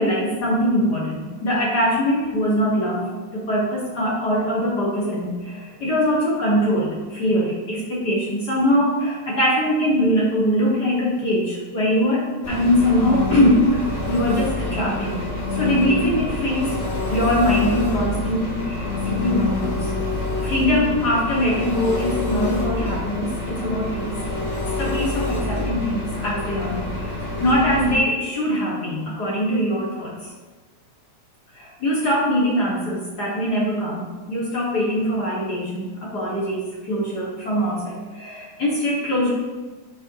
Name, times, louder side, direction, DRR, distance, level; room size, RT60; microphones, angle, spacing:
voice 1, 0.0-13.8 14.1-15.3 15.5-16.8 17.1-19.9 20.4-24.1 24.8-30.1 31.5-39.3, equal, 40° left, -5 dB, 1.6 m, -22 dB
Engine, 12.4-28.0, left 2 dB, 60° left, 3.8 m, -27 dB
7.2 x 5.2 x 4.7 m, 1.3 s
omnidirectional pair, 3.4 m